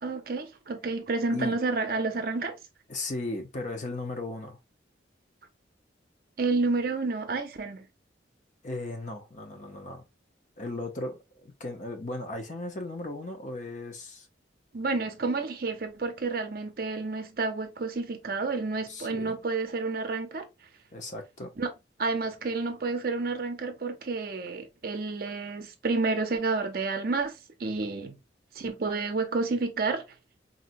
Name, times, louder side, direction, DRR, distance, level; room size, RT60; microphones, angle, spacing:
voice 1, 0.0-2.5 6.4-7.9 14.7-20.4 21.6-21.7 22.0-27.3 27.6-28.2 28.6-30.0, right 3 dB, 50° right, 0.5 m, -30 dB
voice 2, 2.9-4.6 8.6-10.0 10.6-14.3 18.9-19.4 20.9-21.5, left 2 dB, 40° left, 0.6 m, -36 dB
3.9 x 2.1 x 2.5 m
head